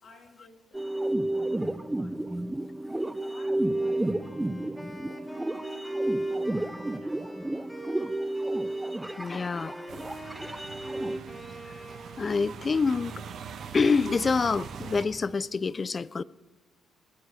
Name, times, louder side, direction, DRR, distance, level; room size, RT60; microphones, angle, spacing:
voice 1, 0.0-2.5 2.9-5.7 6.2-7.5, left 3 dB, 60° left, 2.2 m, -57 dB
sound 1, 0.7-11.2, right 1 dB, 10° right, 0.5 m, -31 dB
Wind instrument woodwind instrument, 3.6-12.4, right 1 dB, 10° left, 3.6 m, -45 dB
voice 2, 9.1-9.8 12.2-13.1 13.7-16.2, left 4 dB, 40° left, 0.4 m, -26 dB
sound 2, 9.9-15.1, right 6 dB, 65° right, 1.2 m, -42 dB
21.0 x 7.4 x 4.8 m
supercardioid pair, 70°, 0 cm